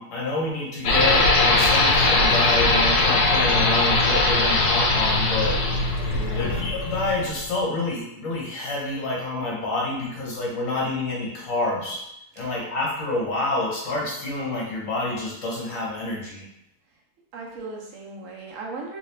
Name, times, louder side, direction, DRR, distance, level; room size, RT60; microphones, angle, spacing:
voice 1, 0.0-5.6 6.0-12.0 12.4-16.5, left 2 dB, 60° left, -3 dB, 1.3 m, -28 dB
sound 1, 0.8-7.5, left 2 dB, 85° left, 1.2 m, -20 dB
voice 2, 6.1-6.8 12.4-12.6 17.3-19.0, right 3 dB, 60° right, -1 dB, 0.9 m, -37 dB
3.2 x 2.8 x 3.3 m, 0.78 s
omnidirectional pair, 1.7 m